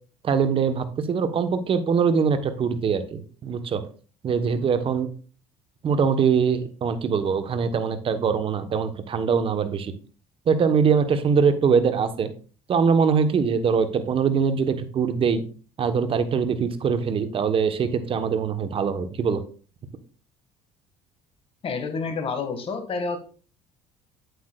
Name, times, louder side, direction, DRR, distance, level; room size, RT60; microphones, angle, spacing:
voice 1, 0.2-3.8 4.2-5.1 5.8-9.9 10.5-12.3 12.7-15.4 15.8-19.4, right 6 dB, 40° right, 10 dB, 1.1 m, -22 dB
voice 2, 21.6-23.2, left 4 dB, 40° left, 6 dB, 1.9 m, -29 dB
8.5 x 8.0 x 2.4 m, 0.38 s
supercardioid pair, 85°, 14 cm